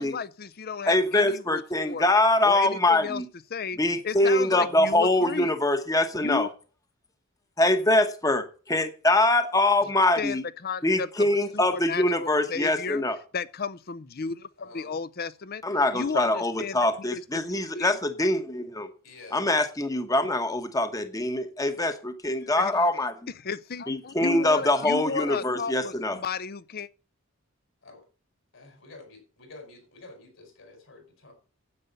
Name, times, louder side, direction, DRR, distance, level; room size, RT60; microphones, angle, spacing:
voice 1, 0.0-2.1 2.4-3.2 3.5-3.8 4.0-5.5 6.2-6.5 10.2-11.3 11.5-13.0 13.3-15.6 15.9-17.4 17.7-18.0 22.5-22.9 23.4-26.9, left 5 dB, 45° left, 0.6 m, -33 dB
voice 2, 0.9-3.3 3.8-6.5 7.6-10.4 10.8-13.2 15.6-18.9 19.3-23.1 23.9-26.2, left 1 dB, 15° left, 1.0 m, -24 dB
voice 3, 14.6-15.0 19.0-19.5 24.4-24.7 27.8-28.0 28.5-31.3, left 2 dB, 65° left, 4.8 m, -49 dB
9.7 x 8.3 x 6.7 m
head